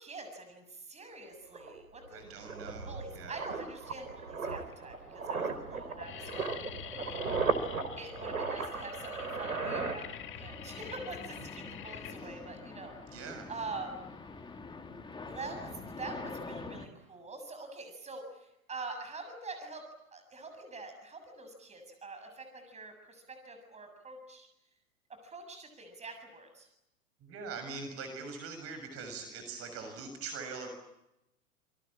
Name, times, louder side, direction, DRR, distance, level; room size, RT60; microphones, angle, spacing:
voice 1, 0.0-2.2 2.8-6.8 7.0-7.3 8.0-14.0 15.2-24.5 25.1-26.7, right 3 dB, 15° right, 6 dB, 7.4 m, -45 dB
sound 1, 1.1-1.2 1.5-10.6 10.9-11.1, right 4 dB, 85° right, 4.0 m, -36 dB
voice 2, 2.1-3.4 11.6-11.7 12.0-12.3 13.1-13.5 27.2-30.7, right 4 dB, 35° right, 6 dB, 6.8 m, -43 dB
sound 2, 3.6-4.0 4.6-4.7 5.0-5.4 5.6-14.6, left 11 dB, 30° left, 1.9 m, -47 dB
sound 3, 3.9-4.1 4.5-16.9, left 3 dB, 10° left, 2.6 m, -48 dB
28.0 x 23.0 x 8.8 m, 0.88 s
figure-of-eight pair, 105°, 42 cm